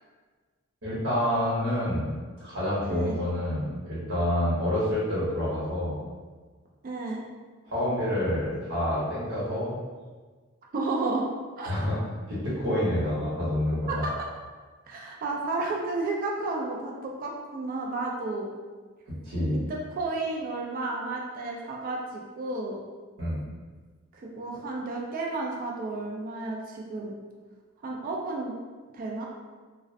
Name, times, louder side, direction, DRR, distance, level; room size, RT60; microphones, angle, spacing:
voice 1, 0.8-2.1 2.4-6.0 7.6-9.7 11.7-11.9 12.3-14.0 19.2-19.6 23.2-23.4, left 1 dB, 75° right, -8 dB, 0.9 m, -28 dB
voice 2, 2.9-3.2 6.8-7.2 10.7-11.3 11.6-11.7 13.9-14.1 14.9-18.5 19.7-22.8 24.1-27.1 27.8-28.5 28.9-29.3, right 3 dB, 40° right, -1 dB, 0.3 m, -32 dB
2.4 x 2.1 x 2.5 m, 1.4 s
head